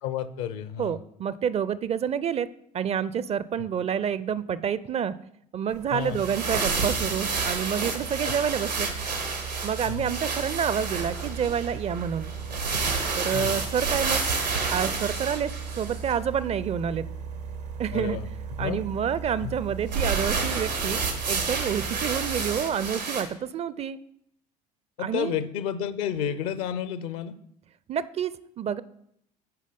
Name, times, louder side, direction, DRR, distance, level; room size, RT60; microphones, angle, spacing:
voice 1, 0.0-1.0 5.9-6.2 8.2-8.3 9.9-10.1 13.3-13.5 17.9-18.3 18.6-18.9 19.4-19.5 25.0-27.4, left 9 dB, 65° left, 13 dB, 0.7 m, -31 dB
voice 2, 0.8-2.5 2.7-5.2 5.5-8.9 9.6-12.3 13.2-14.2 14.7-17.1 17.8-18.2 18.6-21.0 21.3-24.0 25.0-25.4 27.9-28.8, right 8 dB, 30° right, 17 dB, 0.4 m, -28 dB
sound 1, 5.7-22.6, right 6 dB, 75° right, 0.8 m, -38 dB
sound 2, 6.0-16.1 19.9-23.2, right 4 dB, 90° right, 1.3 m, -30 dB
9.2 x 5.1 x 5.2 m, 0.73 s
figure-of-eight pair, 60°, 21 cm